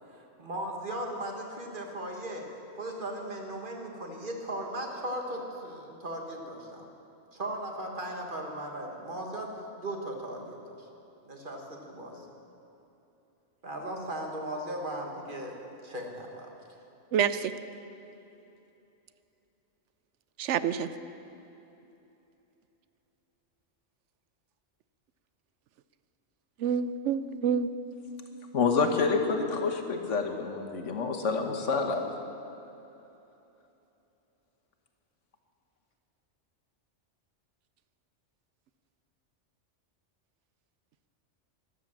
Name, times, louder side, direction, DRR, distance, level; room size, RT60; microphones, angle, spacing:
voice 1, 0.1-2.5 2.8-6.8 7.3-10.9 11.3-12.3 13.6-15.6 15.8-16.5, right 1 dB, 45° right, 1 dB, 1.9 m, -37 dB
voice 2, 17.1-17.5 20.4-20.9 26.6-27.7, right 7 dB, 80° right, 13 dB, 0.9 m, -27 dB
voice 3, 28.5-32.0, left 4 dB, 90° left, 4 dB, 1.5 m, -28 dB
13.0 x 11.0 x 7.3 m, 2.9 s
omnidirectional pair, 1.2 m